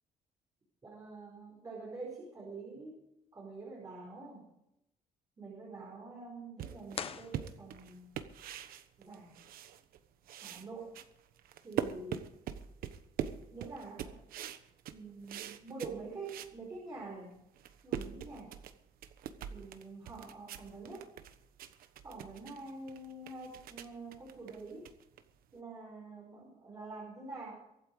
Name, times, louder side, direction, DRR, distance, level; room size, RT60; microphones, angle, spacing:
voice 1, 0.8-3.0 3.3-4.5 5.4-8.1 9.0-9.4 10.4-11.0 11.6-12.3 13.5-14.2 14.9-17.3 17.8-18.6 19.5-21.1 22.0-24.9 25.5-27.5, right 3 dB, 25° right, -3 dB, 4.9 m, -46 dB
sound 1, 6.6-10.0 10.2-16.6 17.0-17.1 17.5-25.6, right 9 dB, 80° right, 1.2 m, -43 dB
sound 2, 6.9-8.1, left 7 dB, 40° left, 0.9 m, -43 dB
23.5 x 8.8 x 4.9 m, 0.83 s
cardioid pair, 160°, 15 cm